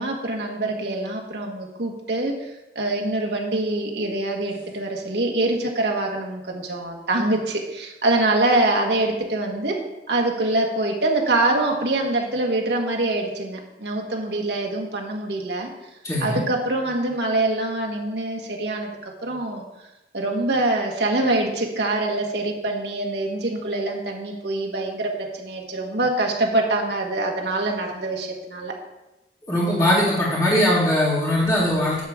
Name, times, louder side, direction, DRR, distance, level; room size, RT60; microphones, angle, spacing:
voice 1, 0.0-9.8 10.1-15.7 16.2-19.6 20.1-28.7, right 2 dB, 70° right, 1 dB, 1.5 m, -24 dB
voice 2, 16.0-16.4 29.4-32.0, left 1 dB, 20° left, -8 dB, 2.0 m, -20 dB
9.9 x 3.7 x 7.2 m, 0.97 s
head